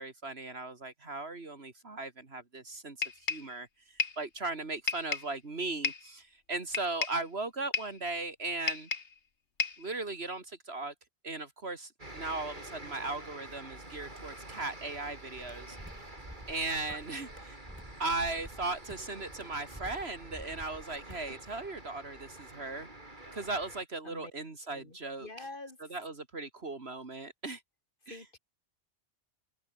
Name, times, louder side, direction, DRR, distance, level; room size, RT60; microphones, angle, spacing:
voice 1, 0.0-8.9 9.8-10.9 11.2-15.8 16.5-17.6 18.0-22.9 23.3-25.3 25.9-27.6 28.1-28.2, right 3 dB, 65° right, 2.7 m, -37 dB
sound 1, 3.0-3.5 4.0-4.3 4.9-5.3 5.8-6.1 6.7-7.2 7.7-8.0 8.7-9.2 9.6-9.9, left 5 dB, 80° left, 2.2 m, -33 dB
sound 2, 12.0-23.8, right 1 dB, 45° right, 5.3 m, -48 dB
sound 3, 15.4-21.3, right 1 dB, 10° right, 3.3 m, -50 dB
voice 2, 24.7-26.0 28.1-28.4, left 2 dB, 50° left, 3.2 m, -47 dB
omnidirectional pair, 1.2 m